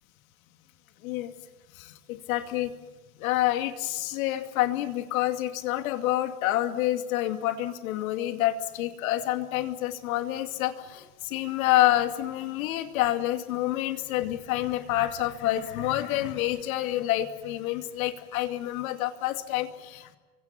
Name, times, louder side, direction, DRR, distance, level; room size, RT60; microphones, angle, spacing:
voice 1, 1.8-2.7 3.2-20.2, left 14 dB, 65° left, 7 dB, 2.5 m, -28 dB
30.0 x 24.5 x 5.9 m, 1.3 s
supercardioid pair, 155°, 45 cm